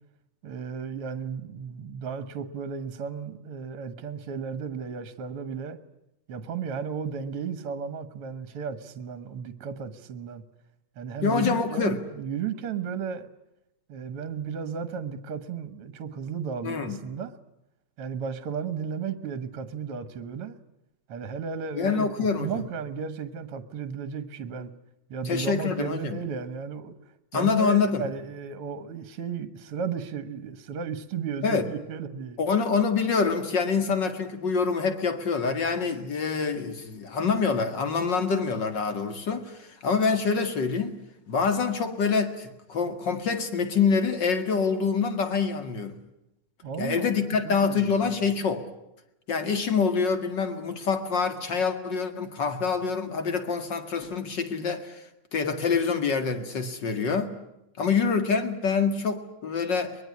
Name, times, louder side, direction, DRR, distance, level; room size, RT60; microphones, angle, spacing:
voice 1, 0.4-5.8 6.3-10.4 11.0-13.3 13.9-17.3 18.0-20.6 21.1-24.7 25.1-27.0 27.3-32.4 46.6-47.9, right 6 dB, 55° right, 12 dB, 1.9 m, -34 dB
voice 2, 11.2-12.0 16.6-17.0 21.7-22.6 25.2-26.2 27.3-28.1 31.4-31.7 32.4-41.0 41.3-45.9 46.8-48.6 49.3-55.1 55.3-57.3 57.8-60.0, left 5 dB, 40° left, 8 dB, 2.3 m, -26 dB
23.5 x 21.5 x 9.7 m, 0.87 s
omnidirectional pair, 3.3 m